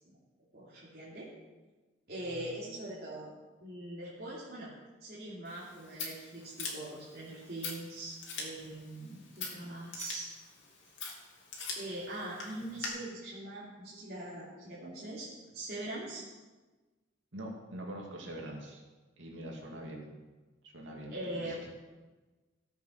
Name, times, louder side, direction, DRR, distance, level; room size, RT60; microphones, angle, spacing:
voice 1, 0.5-1.3 2.1-3.3 3.6-4.7 5.0-10.3 11.8-15.3 15.5-16.2 21.1-21.6, right 1 dB, 50° right, -9 dB, 3.0 m, -42 dB
voice 2, 2.2-2.5 17.3-18.8 19.2-20.1 20.6-21.7, right 1 dB, 65° right, -1 dB, 2.6 m, -44 dB
Scissors, 5.4-12.9, left 4 dB, 65° left, 2.8 m, -44 dB
15.0 x 8.0 x 6.5 m, 1.2 s
head